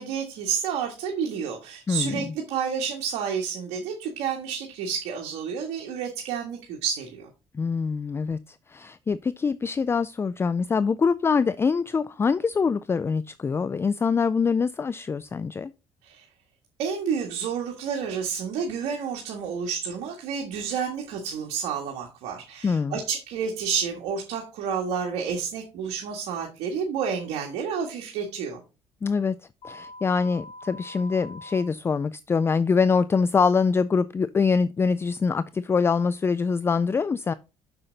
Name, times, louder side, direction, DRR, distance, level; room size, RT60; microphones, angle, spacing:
voice 1, 0.0-7.3 16.0-16.2 16.8-28.6, right 6 dB, 90° right, 1.6 m, -30 dB
voice 2, 1.9-2.2 7.5-15.7 22.6-23.0 29.0-29.4 29.6-37.3, left 5 dB, 25° left, 0.3 m, -24 dB
sound 1, 29.6-31.6, left 1 dB, 55° left, 4.5 m, -43 dB
6.8 x 5.7 x 4.0 m
cardioid pair, 100°, 11 cm